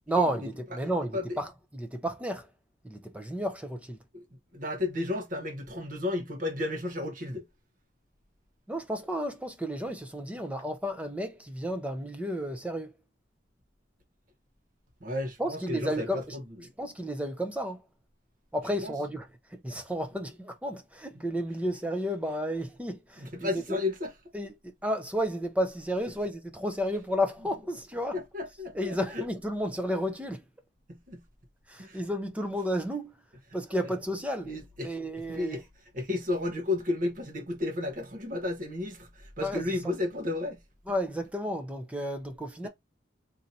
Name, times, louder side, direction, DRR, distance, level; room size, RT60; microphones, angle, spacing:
voice 1, 0.1-2.5 2.8-4.0 8.7-12.9 15.4-16.4 16.8-17.8 18.5-23.8 24.3-28.2 28.7-30.4 31.7-33.1 33.5-34.5 34.8-35.6 39.4-39.6 40.9-42.7, equal, 5° right, 0.6 m, -32 dB
voice 2, 0.7-1.3 4.1-4.2 4.5-7.5 15.0-16.4 18.8-18.9 21.1-21.2 23.2-24.1 28.1-29.3 30.9-31.2 31.8-32.0 34.5-34.9 35.3-35.7 35.9-40.6, left 2 dB, 45° right, 1.0 m, -33 dB
4.1 x 2.8 x 2.7 m
head